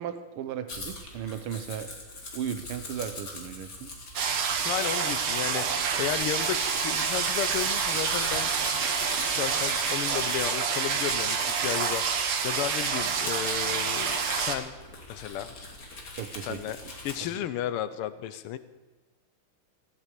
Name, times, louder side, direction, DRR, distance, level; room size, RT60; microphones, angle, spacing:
voice 1, 0.0-1.9 2.3-3.9 16.1-16.8 17.2-17.4, right 9 dB, 90° right, 10 dB, 1.8 m, -36 dB
Domestic sounds home sounds, 0.7-17.2, left 2 dB, 40° left, 2.5 m, -41 dB
sound 1, 4.2-14.6, right 6 dB, 70° right, 2.0 m, -28 dB
voice 2, 4.6-14.7 15.1-15.5 16.4-16.8 17.0-18.6, left 11 dB, 90° left, 13 dB, 1.7 m, -34 dB
15.5 x 8.7 x 8.2 m, 1.2 s
omnidirectional pair, 2.4 m